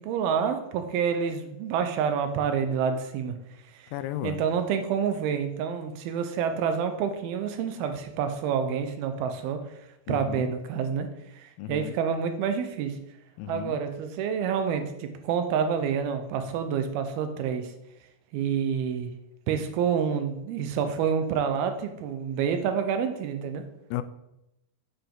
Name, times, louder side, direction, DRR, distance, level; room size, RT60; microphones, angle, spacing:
voice 1, 0.0-3.4 3.7-3.9 4.2-9.6 10.1-11.1 11.3-13.0 13.5-17.7 18.3-19.1 19.5-23.6, right 7 dB, 90° right, 7 dB, 2.7 m, -28 dB
voice 2, 3.9-4.4 10.1-10.5 11.6-12.0 13.4-13.8 23.9-24.0, left 13 dB, 90° left, 12 dB, 2.5 m, -34 dB
8.0 x 6.9 x 3.8 m, 0.88 s
omnidirectional pair, 4.3 m